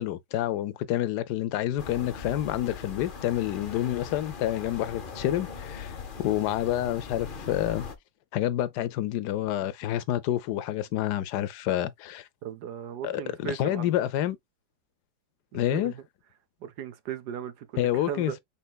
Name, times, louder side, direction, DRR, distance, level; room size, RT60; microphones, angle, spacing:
voice 1, 0.0-7.9 8.3-12.3 13.0-14.4 15.5-15.9 17.8-18.4, left 12 dB, 70° left, 1.0 m, -28 dB
sound 1, 1.8-8.0, left 5 dB, 55° left, 0.6 m, -40 dB
voice 2, 12.4-13.9 15.5-15.9 16.6-18.4, right 9 dB, 70° right, 1.1 m, -37 dB
5.6 x 3.5 x 2.3 m
omnidirectional pair, 2.0 m